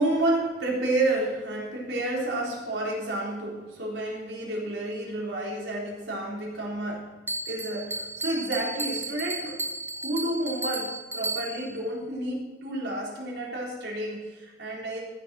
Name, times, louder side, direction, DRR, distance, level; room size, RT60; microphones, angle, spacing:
voice 1, 0.0-7.1 7.5-9.6 10.0-15.0, right 1 dB, 75° right, -3 dB, 4.0 m, -30 dB
Bell, 7.3-11.8, right 3 dB, 15° right, 0.9 m, -34 dB
14.5 x 6.7 x 6.3 m, 1.2 s
head